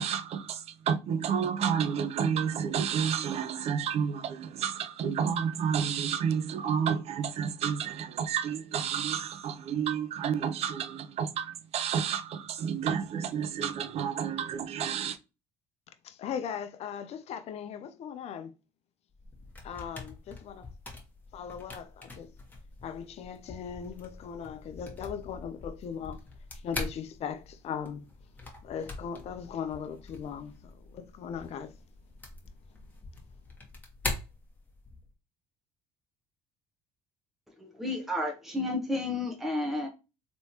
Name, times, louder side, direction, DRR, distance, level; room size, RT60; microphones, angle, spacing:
voice 1, 0.0-15.2, right 7 dB, 55° right, 0.5 m, -30 dB
voice 2, 16.0-18.5 19.6-20.7 21.3-22.3 22.8-26.2 26.5-28.1 28.6-31.8, left 7 dB, 55° left, 0.6 m, -39 dB
sound 1, 19.1-35.1, left 2 dB, 15° left, 1.3 m, -43 dB
voice 3, 37.6-39.9, left 2 dB, ahead, 0.9 m, -31 dB
3.3 x 3.0 x 2.7 m
supercardioid pair, 85°, 13 cm